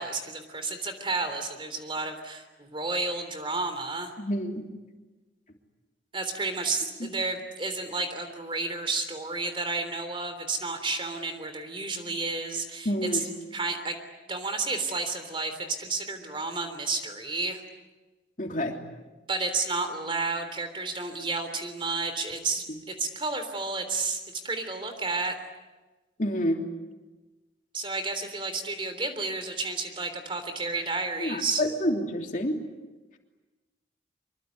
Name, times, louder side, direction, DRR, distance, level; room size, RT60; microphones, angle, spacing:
voice 1, 0.0-4.1 6.1-13.3 13.5-14.0 14.3-17.6 19.3-25.4 27.7-31.6, right 3 dB, 30° right, 8 dB, 3.4 m, -31 dB
voice 2, 4.2-4.7 7.0-7.1 12.8-13.2 18.4-18.8 26.2-26.6 31.2-32.5, equal, 45° left, 3 dB, 3.2 m, -28 dB
25.0 x 23.0 x 9.6 m, 1.2 s
head